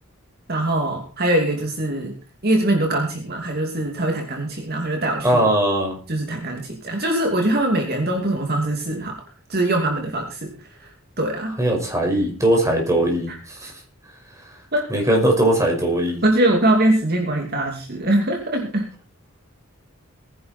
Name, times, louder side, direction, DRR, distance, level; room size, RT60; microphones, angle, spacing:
voice 1, 0.5-2.1 2.4-5.4 6.1-9.1 9.5-10.5 10.8-10.9 11.2-11.5 13.3-13.4 14.7-14.8 16.2-18.9, right 1 dB, 45° right, 2 dB, 2.7 m, -22 dB
voice 2, 5.2-6.0 11.6-13.7 14.9-16.2, right 1 dB, 15° right, 1 dB, 5.6 m, -20 dB
20.5 x 10.5 x 4.5 m, 0.36 s
head